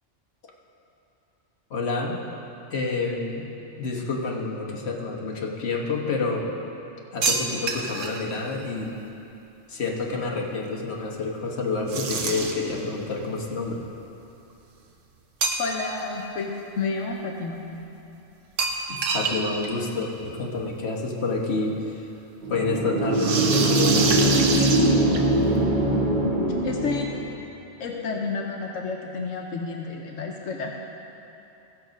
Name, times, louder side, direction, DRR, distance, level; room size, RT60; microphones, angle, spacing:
voice 1, 1.7-2.2 2.7-3.5 3.8-6.6 7.1-8.9 9.7-13.8 18.9-22.1 22.5-24.7, left 3 dB, 60° left, -1 dB, 1.4 m, -28 dB
sound 1, 7.2-8.2 11.9-12.7 15.4-16.0 16.4-16.5 18.6-19.4 19.6-19.7 20.0-20.1 21.3-21.4 23.1-25.4, right 4 dB, 85° right, 1.3 m, -26 dB
voice 2, 15.6-17.6 26.6-27.1 27.8-30.7, left 4 dB, 90° left, 1 dB, 1.2 m, -30 dB
sound 2, 22.4-27.4, right 1 dB, 60° right, 2.4 m, -22 dB
16.0 x 6.7 x 5.1 m, 2.9 s
omnidirectional pair, 1.3 m